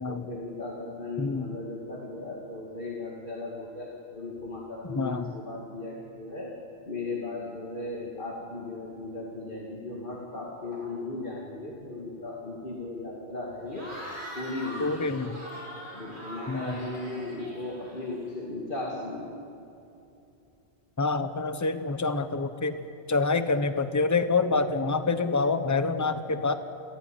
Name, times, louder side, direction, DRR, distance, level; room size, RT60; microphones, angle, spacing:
voice 1, 0.1-6.5 6.9-13.9 14.3-15.1 15.9-19.4, left 2 dB, 50° left, -3 dB, 2.7 m, -37 dB
voice 2, 1.2-1.5 4.9-5.2 14.8-15.4 16.5-16.8 21.0-22.8 23.1-26.5, left 3 dB, 15° left, 10 dB, 0.9 m, -26 dB
Cheering / Crowd, 13.7-18.3, equal, 45° right, 6.7 m, -42 dB
26.5 x 16.0 x 9.3 m, 2.8 s
omnidirectional pair, 1.2 m